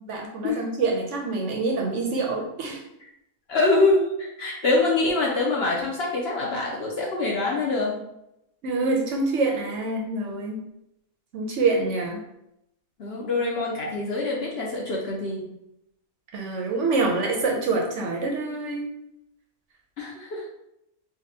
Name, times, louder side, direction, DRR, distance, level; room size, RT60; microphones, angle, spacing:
voice 1, 0.1-2.8 8.6-10.6 11.3-12.2 16.3-18.9, right 3 dB, 65° right, 0 dB, 0.8 m, -26 dB
voice 2, 3.5-8.0 13.0-15.5 20.0-20.5, left 2 dB, 55° left, -3 dB, 0.8 m, -24 dB
4.8 x 2.2 x 2.7 m, 0.81 s
omnidirectional pair, 1.5 m